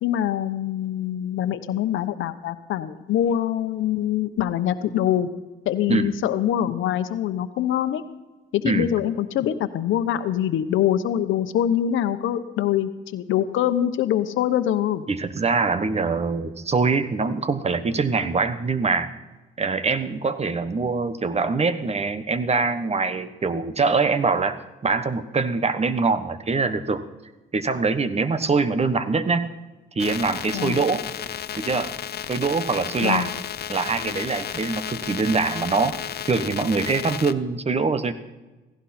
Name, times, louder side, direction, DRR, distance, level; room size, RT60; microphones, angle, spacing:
voice 1, 0.0-5.3 5.6-8.0 8.5-15.0 30.5-30.8 33.0-33.3, left 11 dB, 80° left, 11 dB, 1.0 m, -24 dB
voice 2, 15.1-19.1 19.6-27.0 27.5-29.5 30.0-31.0 31.6-31.9 32.3-33.3 33.7-36.0 36.3-38.1, right 4 dB, 30° right, 12 dB, 1.2 m, -23 dB
sound 1, 30.0-37.3, left 10 dB, 55° left, 0.8 m, -33 dB
17.0 x 16.0 x 4.4 m, 1.2 s
cardioid pair, 90°, 20 cm